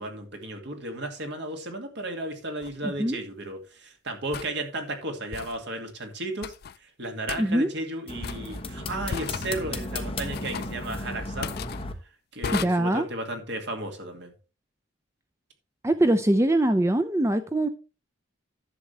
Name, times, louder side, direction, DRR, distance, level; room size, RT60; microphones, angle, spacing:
voice 1, 0.0-6.5 6.8-11.6 12.3-14.3, right 1 dB, 60° right, 2.3 m, -34 dB
sound 1, 2.6-2.8 4.3-4.5 5.3-5.6 6.4-6.8 7.3-7.4 8.2-8.6 9.1-9.5 10.3-10.8 11.4-11.8 12.4-12.7, left 6 dB, 50° left, 0.4 m, -34 dB
voice 2, 2.8-3.2 7.4-7.7 12.5-13.1 15.8-17.7, right 1 dB, 15° right, 0.5 m, -23 dB
sound 2, 8.1-11.9, left 2 dB, 30° left, 1.3 m, -35 dB
11.0 x 7.8 x 3.3 m
head